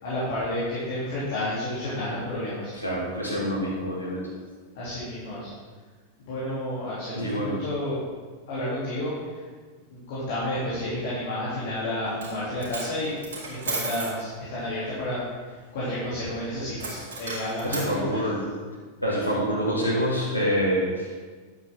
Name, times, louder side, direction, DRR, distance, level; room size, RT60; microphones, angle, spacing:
voice 1, 0.0-2.7 4.7-5.5 6.2-8.0 8.5-9.1 9.9-13.2 13.5-15.2 15.7-18.3, left 1 dB, 55° left, -9 dB, 3.1 m, -31 dB
voice 2, 2.8-4.2 7.2-7.5 17.6-18.4 19.0-21.1, equal, 90° right, -8 dB, 1.8 m, -26 dB
Coin (dropping), 12.1-12.4 12.6-14.2 16.8-17.9, right 3 dB, 65° right, 3.0 m, -33 dB
10.5 x 8.4 x 3.8 m, 1.5 s
figure-of-eight pair, 90°, 0 cm